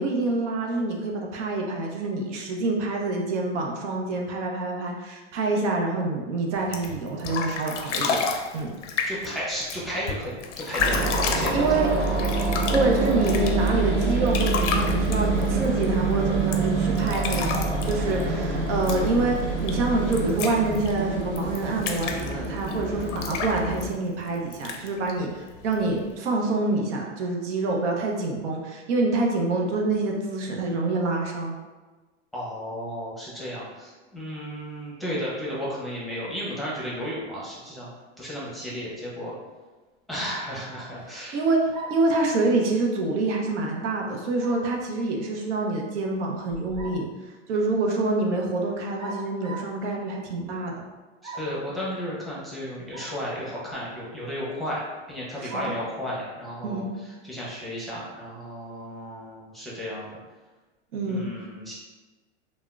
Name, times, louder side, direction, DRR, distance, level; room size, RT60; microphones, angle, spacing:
voice 1, 0.0-8.2 8.5-8.7 11.5-11.9 12.7-31.5 41.1-47.1 47.5-50.7 55.4-55.6 56.6-56.9 60.9-61.3, right 2 dB, 75° right, 0 dB, 0.6 m, -26 dB
sound 1, 6.6-26.2, left 5 dB, 90° left, 0.5 m, -33 dB
voice 2, 9.1-11.8 32.3-37.9 38.2-39.3 40.1-41.4 51.4-56.8 57.2-60.1 61.0-61.7, equal, ahead, -7 dB, 0.8 m, -33 dB
sound 2, 10.8-23.9, right 3 dB, 40° right, 1.1 m, -26 dB
sound 3, 41.7-42.1 44.4-44.7 46.5-47.1 49.0-49.8 51.2-51.6 52.9-53.2 53.7-53.8 55.5-55.8, right 3 dB, 15° right, 0.4 m, -38 dB
3.5 x 2.1 x 2.3 m, 1.3 s
hypercardioid pair, 115°, 36 cm